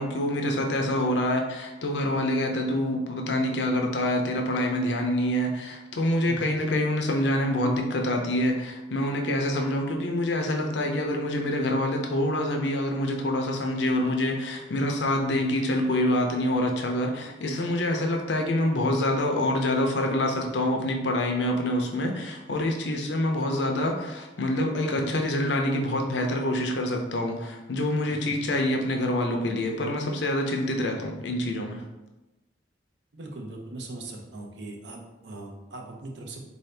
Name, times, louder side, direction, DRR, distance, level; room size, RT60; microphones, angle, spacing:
voice 1, 0.0-31.8, left 1 dB, 75° left, 3 dB, 0.6 m, -26 dB
voice 2, 15.2-15.5 28.0-28.4 33.1-36.4, right 2 dB, 70° right, 1 dB, 0.6 m, -40 dB
3.8 x 2.7 x 3.3 m, 1.1 s
head